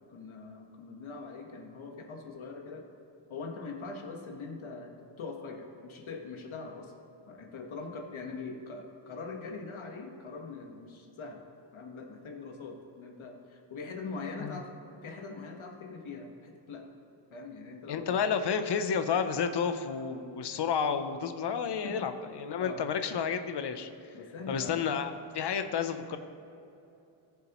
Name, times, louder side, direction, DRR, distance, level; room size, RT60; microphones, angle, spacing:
voice 1, 0.0-2.8 3.3-6.9 7.3-11.4 11.7-16.9 17.3-18.2 21.8-22.1 22.6-22.8 24.1-24.8, left 4 dB, 70° left, 3 dB, 1.4 m, -42 dB
voice 2, 17.9-23.9 24.5-26.2, left 6 dB, 55° left, 8 dB, 0.7 m, -31 dB
18.5 x 7.3 x 3.0 m, 2.8 s
wide cardioid pair, 175°, 49 cm